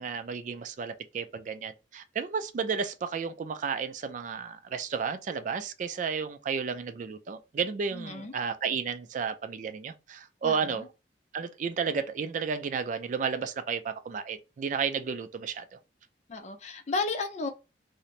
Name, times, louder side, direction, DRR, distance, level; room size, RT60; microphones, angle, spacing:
voice 1, 0.0-10.9 11.3-15.6, right 6 dB, 45° right, 0.3 m, -32 dB
voice 2, 7.9-8.3 10.4-10.9 16.3-17.5, left 3 dB, 40° left, 0.4 m, -33 dB
2.8 x 2.0 x 2.5 m
head